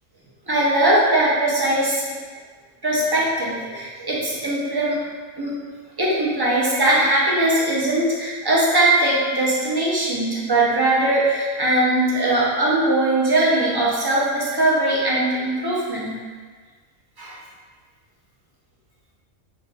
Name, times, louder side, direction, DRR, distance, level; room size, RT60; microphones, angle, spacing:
voice 1, 0.5-2.0 2.8-5.1 5.4-5.6 6.0-16.1 17.2-17.3, right 1 dB, 25° right, -6 dB, 0.6 m, -20 dB
3.5 x 2.7 x 4.0 m, 1.5 s
omnidirectional pair, 1.4 m